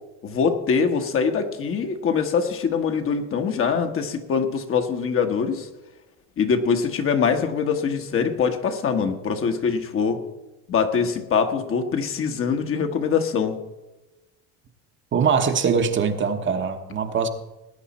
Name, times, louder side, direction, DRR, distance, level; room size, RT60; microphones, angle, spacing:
voice 1, 0.2-5.7 6.4-10.2 10.7-13.6, left 6 dB, 40° left, 6 dB, 1.4 m, -23 dB
voice 2, 15.1-17.3, right 6 dB, 35° right, 6 dB, 1.1 m, -22 dB
19.0 x 9.2 x 4.2 m, 1.0 s
supercardioid pair, 120°, 35 cm